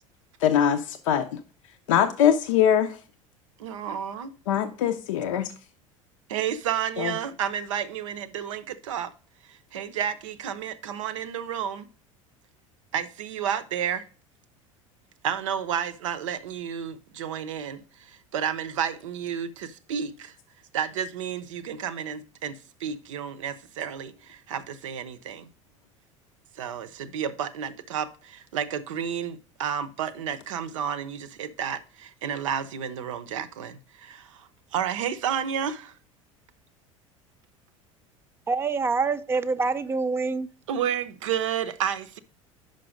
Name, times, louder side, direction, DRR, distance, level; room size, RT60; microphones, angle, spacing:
voice 1, 0.4-1.3 1.9-3.0 4.5-5.5 7.0-7.1, left 9 dB, 70° left, 0.5 m, -22 dB
voice 2, 3.6-4.3 6.3-9.1 9.5-11.9 12.9-14.0 15.2-20.3 20.7-25.5 26.6-36.0 40.7-42.2, right 8 dB, 70° right, 0.6 m, -31 dB
voice 3, 38.5-40.5, right 4 dB, 15° right, 0.4 m, -26 dB
5.4 x 5.2 x 5.0 m
figure-of-eight pair, 70°, 17 cm